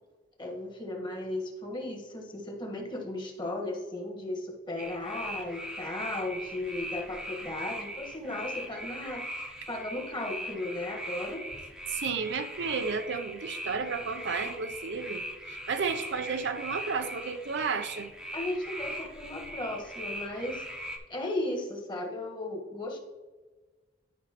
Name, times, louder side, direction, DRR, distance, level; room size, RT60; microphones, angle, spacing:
voice 1, 0.4-11.4 18.3-23.0, left 2 dB, 25° left, 1.4 m, -36 dB
sound 1, 4.8-21.0, equal, 5° right, 0.8 m, -40 dB
voice 2, 11.9-15.2 15.5-18.1, right 5 dB, 70° right, 0.6 m, -32 dB
11.5 x 5.2 x 2.9 m
head